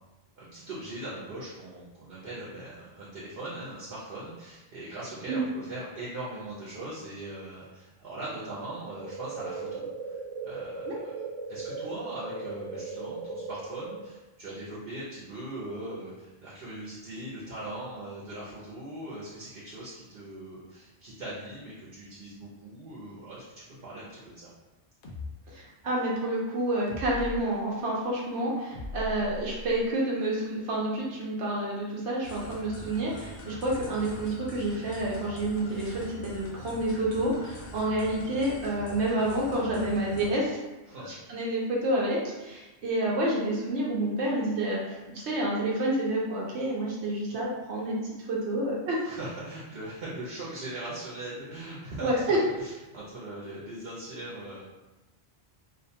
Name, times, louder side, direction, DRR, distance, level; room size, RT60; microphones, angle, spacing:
voice 1, 0.4-11.1 11.5-23.4 23.7-24.5 40.9-41.1 49.0-54.6, right 1 dB, 65° right, -8 dB, 0.9 m, -40 dB
sound 1, 8.9-13.9, right 4 dB, 45° right, 0.4 m, -37 dB
sound 2, 25.0-25.3 26.9-27.4 28.7-29.9, left 1 dB, 60° left, 0.6 m, -38 dB
voice 2, 25.5-40.6 41.0-48.0 48.3-49.0 52.0-52.4, right 1 dB, 90° right, -4 dB, 0.9 m, -29 dB
sound 3, 32.2-40.3, left 2 dB, 90° left, 0.9 m, -43 dB
2.5 x 2.1 x 2.7 m, 1.1 s
omnidirectional pair, 1.1 m